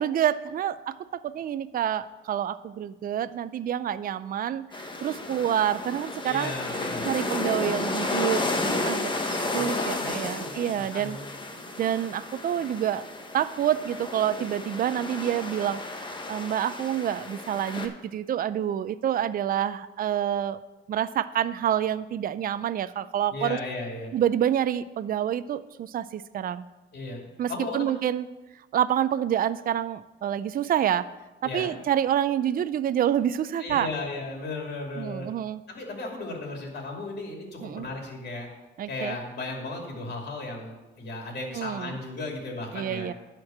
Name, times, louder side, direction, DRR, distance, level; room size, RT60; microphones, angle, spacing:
voice 1, 0.0-6.5 7.0-11.2 11.8-13.1 13.3-20.6 20.9-23.6 24.1-26.7 27.4-28.3 28.7-31.1 31.4-33.9 35.0-35.6 37.6-37.9 38.8-39.2 41.5-42.0 42.7-43.1, right 10 dB, 45° right, 14 dB, 0.4 m, -27 dB
sound 1, 4.7-17.9, left 2 dB, 25° left, 1.2 m, -32 dB
voice 2, 6.2-7.1 9.5-11.3 23.3-24.1 26.9-27.9 31.4-31.7 33.6-35.3 35.7-38.5 38.9-43.1, left 2 dB, 55° left, 0 dB, 2.9 m, -35 dB
11.5 x 4.5 x 7.2 m, 1.1 s
cardioid pair, 90°, 20 cm